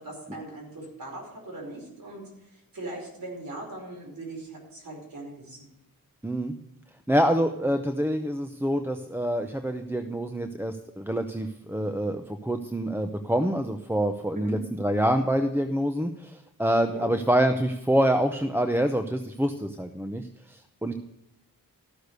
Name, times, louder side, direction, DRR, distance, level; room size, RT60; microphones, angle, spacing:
voice 1, 0.0-5.7 14.4-14.5 16.9-17.1, right 1 dB, 70° right, -1 dB, 5.0 m, -40 dB
voice 2, 6.2-6.5 7.1-20.9, equal, 5° right, 6 dB, 0.6 m, -26 dB
13.5 x 6.6 x 6.6 m, 0.86 s
wide cardioid pair, 90°, 35 cm